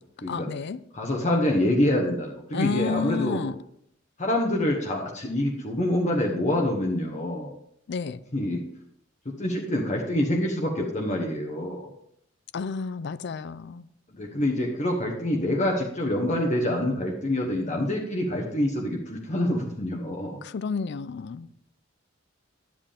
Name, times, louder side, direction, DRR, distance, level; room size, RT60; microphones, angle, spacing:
voice 1, 0.3-0.8 2.5-3.6 7.9-8.2 12.5-13.9 20.4-21.5, left 5 dB, 60° left, 0.4 m, -30 dB
voice 2, 0.9-3.4 4.2-7.5 8.3-8.6 9.2-11.9 14.1-20.4, left 1 dB, 35° left, 1.1 m, -26 dB
10.5 x 7.7 x 3.5 m
head